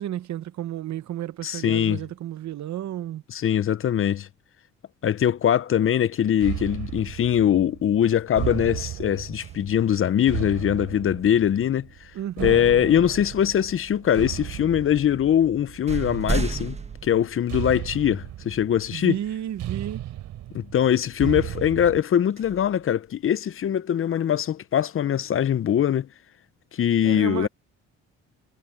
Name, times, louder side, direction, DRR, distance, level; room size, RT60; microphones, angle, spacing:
voice 1, 0.0-3.2 12.1-12.6 18.9-20.1 27.0-27.5, right 11 dB, 65° right, 1.0 m, -32 dB
voice 2, 1.4-2.0 3.3-4.3 5.0-11.9 12.4-16.8 17.0-19.2 20.5-26.1 26.7-27.5, left 10 dB, 45° left, 0.6 m, -22 dB
sound 1, 6.4-22.0, right 13 dB, 80° right, 3.8 m, -35 dB
sound 2, 7.9-10.0 12.1-12.3 13.1-13.9 14.8-14.9 15.3-18.1 18.7-18.8 21.4-23.5, right 3 dB, 20° right, 1.4 m, -36 dB
cardioid pair, 90°, 30 cm